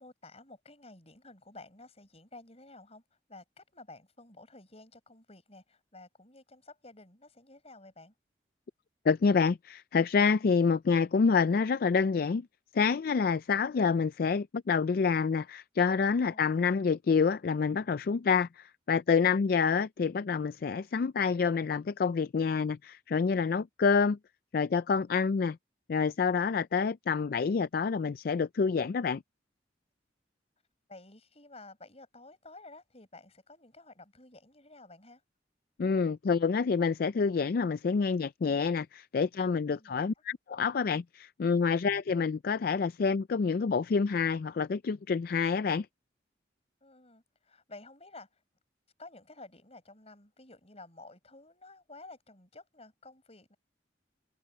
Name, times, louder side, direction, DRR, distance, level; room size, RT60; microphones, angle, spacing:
voice 1, 0.0-3.0 3.3-8.1 16.3-16.7 19.1-19.4 30.9-35.2 39.7-40.0 46.8-48.4 49.0-53.6, left 2 dB, 35° left, 6.2 m, -52 dB
voice 2, 9.1-12.5 12.7-24.2 24.5-25.6 25.9-29.2 35.8-45.9, left 5 dB, 55° left, 0.4 m, -27 dB
open air
head